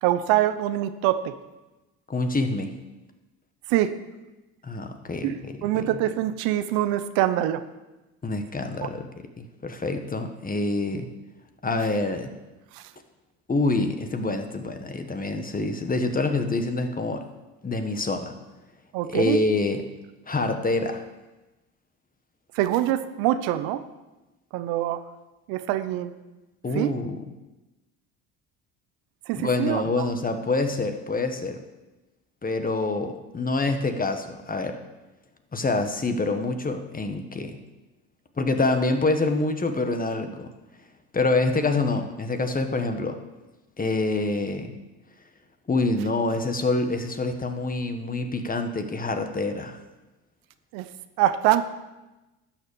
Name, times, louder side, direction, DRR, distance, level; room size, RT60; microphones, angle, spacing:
voice 1, 0.0-1.3 3.7-3.9 5.2-7.6 12.7-12.8 18.9-19.4 22.5-23.8 24.5-25.0 25.5-26.1 26.7-26.9 29.3-30.0 50.7-50.9 51.2-51.6, right 13 dB, 80° right, 11 dB, 0.8 m, -24 dB
voice 2, 2.1-2.7 4.6-5.8 8.2-9.0 9.4-11.1 11.6-12.3 13.5-17.2 17.6-18.3 19.1-19.8 20.3-21.0 26.6-27.2 29.3-31.6 32.4-34.8 35.5-37.6 38.4-40.5 41.1-43.2 43.8-44.7 45.7-49.8, left 3 dB, 25° left, 6 dB, 1.6 m, -26 dB
12.0 x 6.5 x 7.0 m, 1.1 s
supercardioid pair, 75°, 34 cm